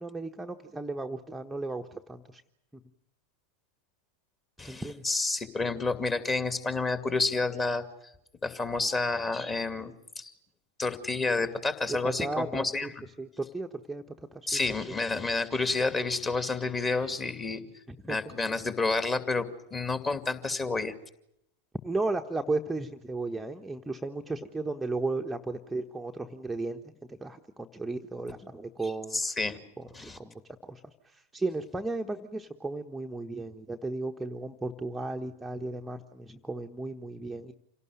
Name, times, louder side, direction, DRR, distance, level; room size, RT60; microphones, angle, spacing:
voice 1, 0.0-2.4 4.7-5.0 12.0-12.9 13.2-14.0 14.3-14.6 17.9-18.2 21.8-26.8 27.1-29.2 30.0-30.3 30.6-30.8 31.1-37.5, right 2 dB, 5° right, 3 dB, 1.2 m, -35 dB
voice 2, 4.6-7.8 8.4-10.3 10.8-13.1 14.5-17.7 18.0-20.9 29.1-29.6 29.9-30.2, left 3 dB, 20° left, 10 dB, 2.5 m, -30 dB
27.5 x 18.0 x 9.4 m, 0.80 s
figure-of-eight pair, 90°, 0 cm